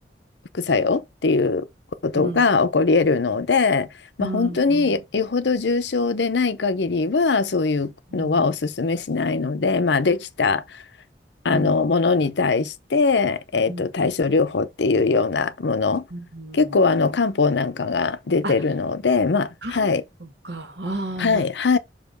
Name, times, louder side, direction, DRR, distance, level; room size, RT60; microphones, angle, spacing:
voice 1, 0.5-1.7 2.0-3.9 4.2-10.6 11.4-16.0 16.5-20.0 21.2-21.8, left 4 dB, 75° left, 0.7 m, -21 dB
voice 2, 2.1-2.5 4.2-5.0 8.1-8.4 11.5-11.7 13.7-13.8 16.1-16.8 18.4-18.5 19.6-19.9 20.2-21.5, right 1 dB, 75° right, 1.7 m, -32 dB
6.8 x 2.9 x 5.2 m
head